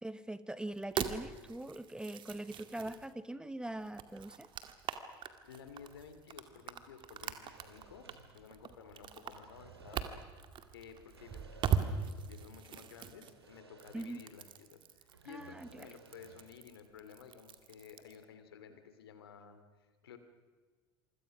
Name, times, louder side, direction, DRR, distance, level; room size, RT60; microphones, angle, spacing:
voice 1, 0.0-4.5 13.9-14.2 15.3-15.9, right 1 dB, 5° right, 14 dB, 1.0 m, -42 dB
sound 1, 0.7-3.1 3.8-18.2, right 8 dB, 40° right, 2.1 m, -41 dB
voice 2, 5.4-10.4 10.7-14.8 15.2-20.2, left 7 dB, 70° left, 9 dB, 2.9 m, -54 dB
sound 2, 7.2-8.9 9.2-10.4 10.9-12.3 12.6-12.7 13.3-14.5 14.8-16.7, right 4 dB, 85° right, 2.4 m, -59 dB
26.5 x 25.0 x 6.1 m, 1.5 s
figure-of-eight pair, 75°, 13 cm